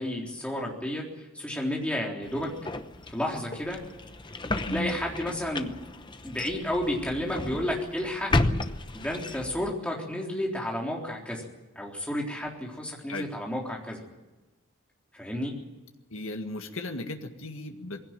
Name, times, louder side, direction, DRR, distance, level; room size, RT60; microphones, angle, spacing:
voice 1, 0.0-2.7 3.1-3.8 4.5-5.8 6.2-8.3 8.9-11.5 11.8-14.0 15.1-15.5, left 1 dB, 5° left, -1 dB, 3.7 m, -31 dB
sound 1, 2.2-9.7, left 2 dB, 20° left, 0.8 m, -33 dB
voice 2, 16.1-18.0, left 2 dB, 70° left, 5 dB, 1.9 m, -35 dB
20.0 x 16.5 x 9.1 m, 1.1 s
head